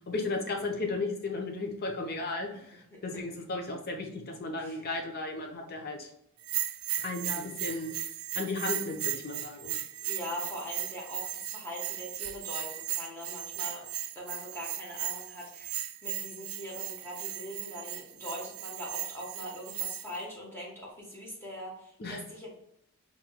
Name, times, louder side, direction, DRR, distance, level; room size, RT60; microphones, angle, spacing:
voice 1, 0.1-6.1 7.0-7.9 8.3-9.8 22.0-22.2, left 3 dB, 45° left, 2 dB, 0.8 m, -35 dB
voice 2, 2.9-3.2 4.6-4.8 10.0-13.9 14.1-22.5, equal, 10° left, -4 dB, 1.1 m, -42 dB
Bell, 6.4-20.2, right 11 dB, 70° right, 0.4 m, -37 dB
4.3 x 3.1 x 2.3 m, 0.79 s
head